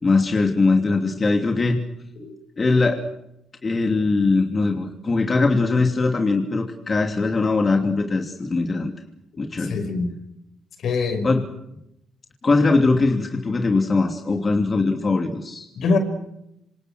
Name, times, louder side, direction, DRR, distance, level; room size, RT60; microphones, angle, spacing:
voice 1, 0.0-1.8 2.6-3.0 3.6-8.9 9.4-9.7 11.2-11.4 12.4-15.7, left 3 dB, 30° left, 3 dB, 2.9 m, -21 dB
voice 2, 9.6-10.2 10.8-11.3 15.7-16.0, left 4 dB, 65° left, 8 dB, 5.7 m, -23 dB
27.0 x 26.5 x 6.4 m, 0.84 s
cardioid pair, 90°, 0 cm